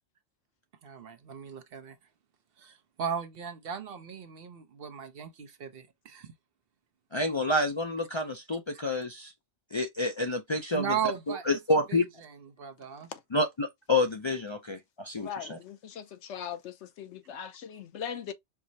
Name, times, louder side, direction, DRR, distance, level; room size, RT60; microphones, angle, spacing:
voice 1, 0.8-2.0 2.6-6.3 10.7-11.6 11.9-12.0 12.6-13.1, right 8 dB, 60° right, 0.9 m, -36 dB
voice 2, 7.1-9.3 9.7-11.0 11.3-12.0 13.3-15.6, left 2 dB, 45° left, 0.4 m, -28 dB
voice 3, 15.2-18.3, left 8 dB, 90° left, 1.0 m, -40 dB
4.6 x 2.1 x 2.7 m
omnidirectional pair, 1.1 m